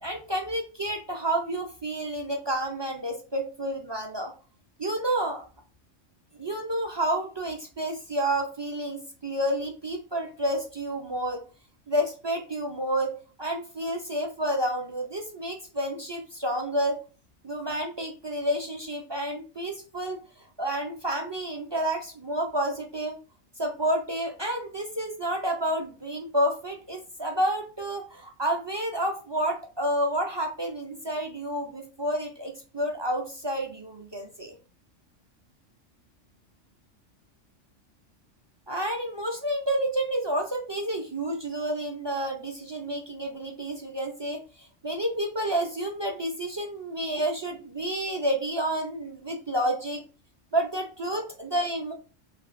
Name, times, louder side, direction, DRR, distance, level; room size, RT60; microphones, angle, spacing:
voice 1, 0.0-4.3 4.8-5.4 6.4-11.4 11.9-17.0 17.4-23.2 23.6-34.6 38.7-50.0 50.5-51.9, right 1 dB, 40° right, 2 dB, 0.4 m, -30 dB
5.7 x 2.8 x 2.5 m, 0.36 s
omnidirectional pair, 1.3 m